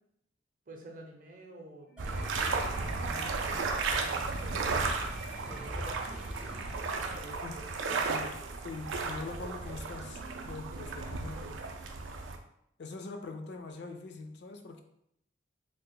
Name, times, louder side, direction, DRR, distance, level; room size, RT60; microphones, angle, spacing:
voice 1, 0.7-1.9 2.5-4.9 5.5-6.0 6.8-7.4 7.8-8.1 10.7-11.0, right 1 dB, 45° right, 2 dB, 0.6 m, -49 dB
sound 1, 1.9-9.3, left 2 dB, 85° left, 0.8 m, -55 dB
sound 2, 2.0-7.0, equal, 5° right, 0.3 m, -44 dB
sound 3, 2.0-12.4, right 4 dB, 90° right, 0.4 m, -34 dB
voice 2, 8.1-8.4 8.6-11.6 12.8-14.8, left 3 dB, 60° left, 5 dB, 0.4 m, -43 dB
3.3 x 2.1 x 3.8 m, 0.74 s
head